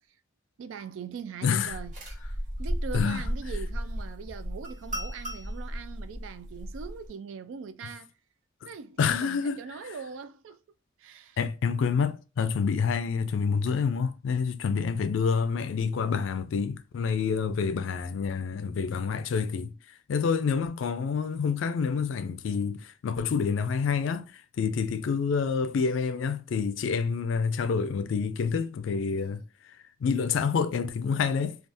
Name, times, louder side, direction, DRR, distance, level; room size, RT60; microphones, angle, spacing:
voice 1, 0.6-2.0 2.6-8.1 8.7-10.6 11.0-11.4, right 6 dB, 90° right, 0.3 m, -41 dB
voice 2, 1.4-1.7 2.9-3.2 9.0-9.6 11.4-19.7 20.1-29.4 30.0-31.6, left 5 dB, 80° left, 0.3 m, -28 dB
sound 1, 1.7-7.1, equal, 40° right, 1.2 m, -34 dB
3.4 x 2.3 x 2.6 m
head